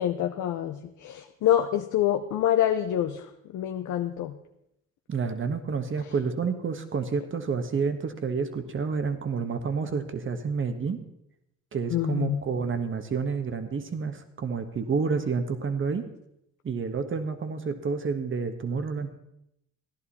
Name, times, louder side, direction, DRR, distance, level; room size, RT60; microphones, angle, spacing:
voice 1, 0.0-4.3 11.9-12.4, left 11 dB, 75° left, 5 dB, 0.8 m, -26 dB
voice 2, 5.1-11.0 11.7-16.0 16.6-19.1, right 5 dB, 40° right, 8 dB, 1.4 m, -29 dB
15.0 x 11.0 x 4.3 m, 0.81 s
cardioid pair, 90°, 30 cm